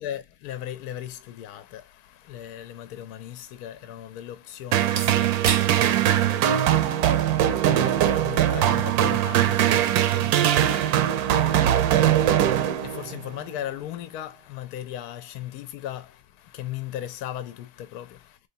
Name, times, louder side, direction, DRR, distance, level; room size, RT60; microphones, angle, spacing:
voice 1, 0.0-18.4, left 11 dB, 80° left, 1.1 m, -38 dB
sound 1, 2.4-10.4, right 6 dB, 50° right, 0.7 m, -39 dB
sound 2, 4.7-13.2, right 11 dB, 80° right, 1.1 m, -21 dB
3.8 x 3.3 x 2.6 m
omnidirectional pair, 1.6 m